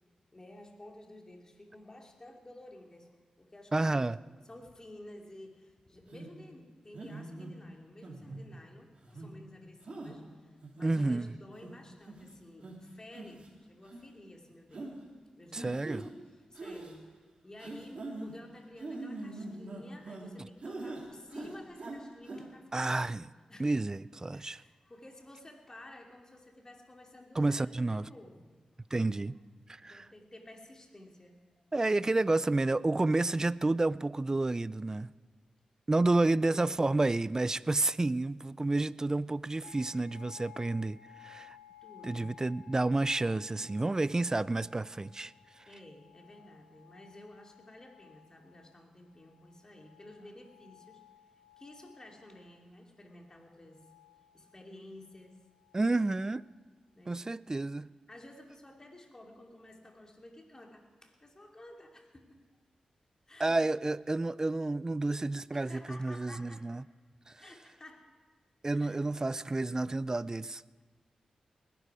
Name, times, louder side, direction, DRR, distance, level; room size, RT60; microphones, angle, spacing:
voice 1, 0.3-3.1 3.4-4.1 4.4-15.0 15.4-17.1 17.4-23.2 23.5-23.7 24.3-28.6 29.8-31.4 41.8-42.3 45.7-51.0 51.6-53.8 54.3-55.4 57.0-57.2 58.1-62.4 63.3-63.6 65.5-66.7 67.4-68.1 68.7-69.0, left 1 dB, 30° left, 2 dB, 2.7 m, -53 dB
voice 2, 3.7-4.2 10.8-11.3 15.5-16.0 22.7-23.2 23.6-24.6 27.4-28.1 28.9-29.3 29.7-30.1 31.7-35.1 35.9-41.6 42.0-45.3 55.7-56.4 57.1-57.9 63.4-66.8 67.3-67.4 68.6-70.6, right 2 dB, 25° right, 19 dB, 0.4 m, -30 dB
sound 1, 6.1-6.3 6.9-7.5 8.0-8.5 9.0-9.3 9.9-10.1 10.6-11.1 11.6-11.7 12.1-12.3 12.6-12.7 13.1-13.5 13.8-14.0 14.7-14.9 15.5-16.1 16.5-16.9 17.6-18.3 18.8-20.3 20.6-21.0 21.3-22.0 22.2-22.4, right 2 dB, 55° right, 3.0 m, -42 dB
sound 2, 39.6-52.6 53.1-54.7 55.0-56.4, left 12 dB, 60° left, 5.9 m, -58 dB
20.0 x 11.5 x 4.9 m, 1.4 s
cardioid pair, 50°, 2 cm